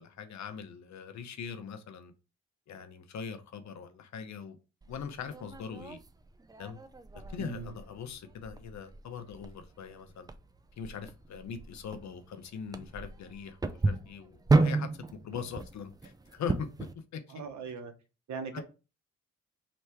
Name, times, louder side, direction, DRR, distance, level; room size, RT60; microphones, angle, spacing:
voice 1, 0.0-2.1 2.7-4.6 4.9-6.0 6.6-6.8 7.3-10.3 10.8-14.9 15.2-16.7 17.1-17.2 18.5-18.6, left 7 dB, 70° left, 0.8 m, -41 dB
sound 1, 4.8-16.9, right 3 dB, 15° right, 0.4 m, -33 dB
voice 2, 7.4-7.7 17.3-17.9 18.3-18.6, right 5 dB, 70° right, 1.0 m, -39 dB
3.4 x 3.1 x 4.4 m
cardioid pair, 90°, 29 cm